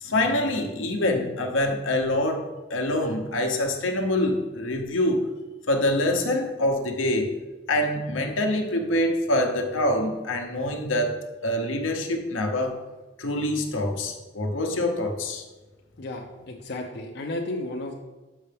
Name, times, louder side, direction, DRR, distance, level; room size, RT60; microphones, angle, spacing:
voice 1, 0.0-5.3 5.7-7.3 7.7-12.7 13.2-15.4, left 1 dB, 85° left, 3 dB, 0.9 m, -25 dB
voice 2, 16.0-18.0, left 2 dB, 55° left, 1 dB, 0.6 m, -33 dB
6.7 x 5.7 x 3.4 m, 1.2 s
head